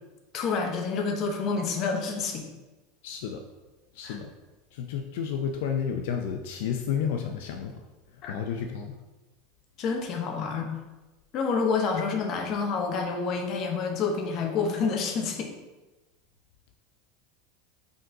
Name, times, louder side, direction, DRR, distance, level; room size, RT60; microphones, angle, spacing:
voice 1, 0.3-2.4 4.0-4.2 8.2-8.3 9.8-10.8 11.3-15.5, left 5 dB, 35° left, 2 dB, 0.9 m, -28 dB
voice 2, 3.0-3.4 3.9-4.3 4.7-7.8 8.3-9.0, left 7 dB, 70° left, 4 dB, 0.5 m, -31 dB
5.3 x 3.9 x 4.7 m, 1.1 s
supercardioid pair, 165°, 0 cm